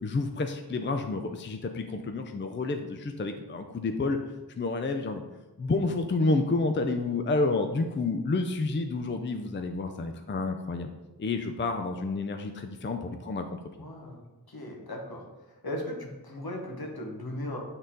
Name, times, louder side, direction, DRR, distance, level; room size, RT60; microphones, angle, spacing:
voice 1, 0.0-4.2 4.6-5.2 5.6-10.9 11.2-13.6, left 3 dB, 30° left, 6 dB, 0.5 m, -29 dB
voice 2, 13.8-14.2 14.5-15.2 15.6-17.6, left 1 dB, 70° left, 1 dB, 1.4 m, -37 dB
8.4 x 3.9 x 3.8 m, 1.1 s
wide cardioid pair, 80°, 39 cm